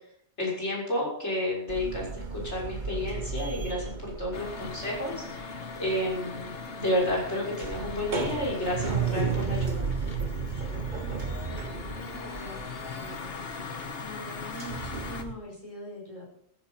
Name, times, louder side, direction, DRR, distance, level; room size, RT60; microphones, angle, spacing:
voice 1, 0.4-6.5 6.8-9.9, left 1 dB, 85° left, -2 dB, 6.7 m, -31 dB
sound 1, 1.7-5.4 5.7-15.3, right 5 dB, 45° right, 1.4 m, -33 dB
sound 2, 4.3-15.2, left 4 dB, 60° left, 1.6 m, -40 dB
voice 2, 4.5-4.9 10.9-16.3, left 1 dB, 30° left, -3 dB, 5.3 m, -45 dB
14.0 x 11.5 x 7.5 m, 0.66 s
omnidirectional pair, 1.1 m